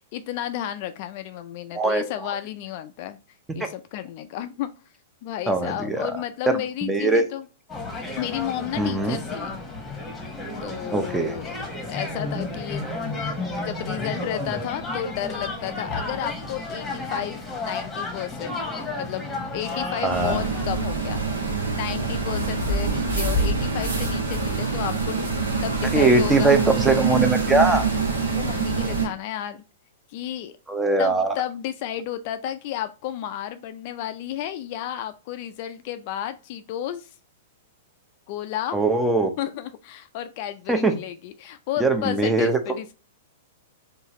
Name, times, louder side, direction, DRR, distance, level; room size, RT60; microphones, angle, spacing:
voice 1, 0.0-3.2 3.5-4.7 5.2-7.5 8.2-9.5 10.6-11.6 11.9-12.9 13.6-18.6 19.0-19.2 19.5-21.5 21.7-26.6 28.3-29.6 30.1-30.6 31.0-37.1 38.3-38.8 39.4-42.9, left 11 dB, 50° left, 10 dB, 0.3 m, -32 dB
voice 2, 5.5-6.1 6.5-7.2 8.8-9.2 10.9-11.4 20.0-20.4 25.9-27.9 30.7-31.3 38.7-39.3 40.7-40.9 41.8-42.6, right 2 dB, 10° right, 6 dB, 0.6 m, -21 dB
sound 1, 7.7-20.6, left 2 dB, 10° left, 1.1 m, -32 dB
sound 2, 20.1-29.1, right 4 dB, 80° right, 0.9 m, -25 dB
3.9 x 2.4 x 3.0 m, 0.33 s
hypercardioid pair, 105°, 0 cm